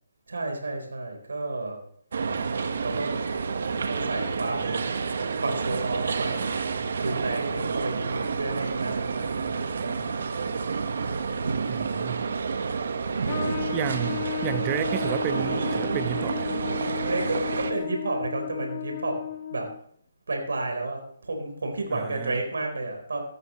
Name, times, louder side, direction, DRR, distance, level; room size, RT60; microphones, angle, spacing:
voice 1, 0.3-1.8 2.2-2.4 2.8-3.2 3.9-4.9 5.4-10.1 11.4-12.0 13.0-13.5 17.0-19.7 20.3-23.2, right 2 dB, 80° right, 3 dB, 4.0 m, -32 dB
sound 1, 2.1-17.7, right 5 dB, 65° right, 1.4 m, -29 dB
voice 2, 11.7-12.2 13.7-16.5 21.9-22.4, right 12 dB, 25° right, 13 dB, 0.8 m, -32 dB
Trumpet, 13.2-19.8, left 11 dB, 45° left, 1.8 m, -34 dB
15.5 x 12.5 x 3.1 m, 0.63 s
hypercardioid pair, 150°, 0 cm